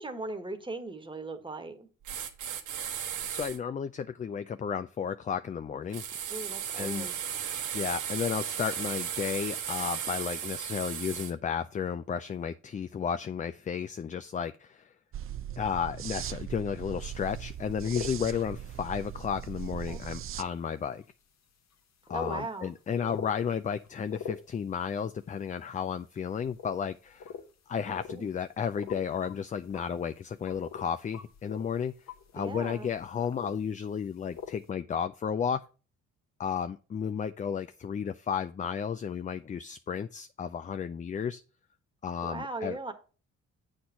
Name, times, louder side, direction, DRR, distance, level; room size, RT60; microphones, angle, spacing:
voice 1, 0.0-1.9 6.3-7.1 19.7-20.0 22.1-22.7 27.9-28.3 32.3-32.9 42.2-42.9, right 2 dB, 15° right, 1.4 m, -39 dB
sound 1, 2.0-3.6 5.9-11.3, right 9 dB, 80° right, 1.2 m, -35 dB
voice 2, 3.3-6.0 6.8-7.1 7.7-14.8 15.6-21.0 22.1-27.3 27.7-31.9 32.3-35.6 36.4-41.4 42.0-42.8, left 7 dB, 25° left, 0.4 m, -33 dB
sound 2, 15.1-20.4, right 10 dB, 45° right, 0.5 m, -39 dB
sound 3, 17.1-17.2 17.6-18.1 18.6-18.9 19.5-19.6 20.4-20.5 21.0-21.1 21.7-21.8 22.0-22.4 23.0-23.4 23.8-24.8 25.2-25.9 26.4-26.8 27.1-27.4 27.9-28.4 28.7-29.3 29.6-30.9 31.1-34.0 34.3-34.6, left 7 dB, 60° left, 1.2 m, -43 dB
7.7 x 4.3 x 5.7 m
cardioid pair, 90°, 30 cm